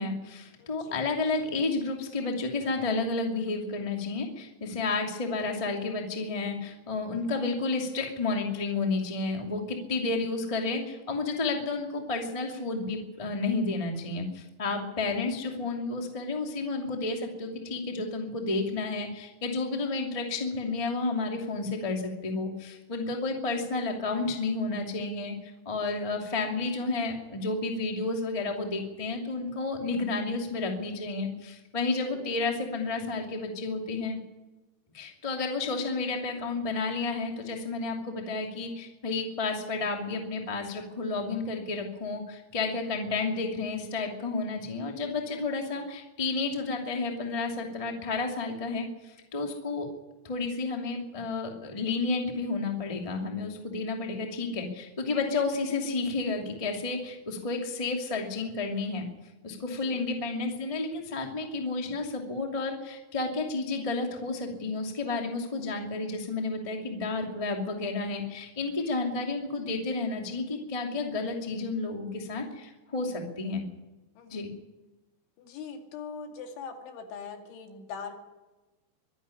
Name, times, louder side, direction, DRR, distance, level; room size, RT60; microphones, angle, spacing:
voice 1, 0.0-34.2 34.9-49.9 50.2-59.0 59.4-73.6 74.3-74.5, left 3 dB, 15° left, 2 dB, 1.0 m, -31 dB
voice 2, 0.6-1.0 14.7-14.9 22.9-23.0 32.1-32.2 45.3-45.4 59.6-60.0 74.2-74.5 75.4-78.2, left 5 dB, 80° left, 4 dB, 4.7 m, -42 dB
23.5 x 11.0 x 9.9 m, 1.1 s
omnidirectional pair, 5.4 m